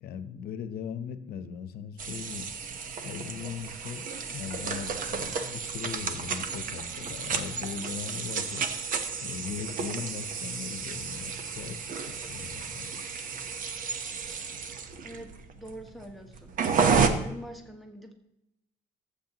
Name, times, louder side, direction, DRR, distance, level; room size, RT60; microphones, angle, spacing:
voice 1, 0.0-2.5 3.0-4.1 4.3-8.6 9.2-13.0, left 7 dB, 65° left, 11 dB, 0.9 m, -39 dB
sound 1, 2.0-17.1, right 5 dB, 55° right, 1.0 m, -32 dB
voice 2, 15.0-16.6 17.1-18.1, right 1 dB, ahead, 2 dB, 1.5 m, -44 dB
14.5 x 8.2 x 3.0 m, 0.83 s
cardioid pair, 110°, 17 cm